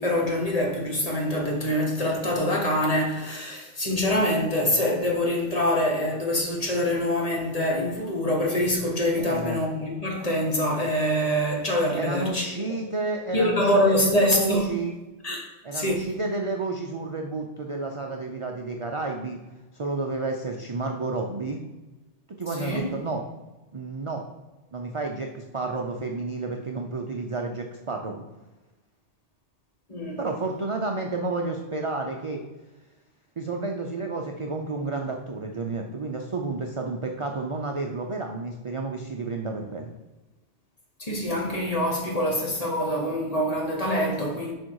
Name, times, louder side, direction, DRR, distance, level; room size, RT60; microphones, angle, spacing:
voice 1, 0.0-12.4 13.3-14.7 15.2-15.4 15.7-16.1 22.6-22.9 29.9-30.2 41.0-44.5, left 1 dB, 35° left, 1.4 m, -25 dB
voice 2, 9.1-9.6 11.9-14.9 15.6-19.4 19.7-21.6 22.4-23.2 23.7-24.2 24.7-28.2 30.2-32.4 33.4-39.9, right 3 dB, 40° right, 0.5 m, -31 dB
6.4 x 5.1 x 4.7 m
omnidirectional pair, 1.2 m